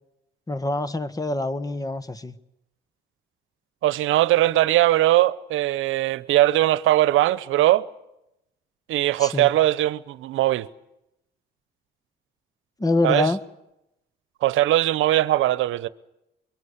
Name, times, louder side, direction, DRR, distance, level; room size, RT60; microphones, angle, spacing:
voice 1, 0.5-2.4 9.2-9.5 12.8-13.4, left 2 dB, 20° left, 1.6 m, -25 dB
voice 2, 3.8-7.8 8.9-10.7 13.0-13.3 14.4-15.9, right 15 dB, 85° right, 0.9 m, -20 dB
24.0 x 23.5 x 8.2 m
cardioid pair, 90°, 20 cm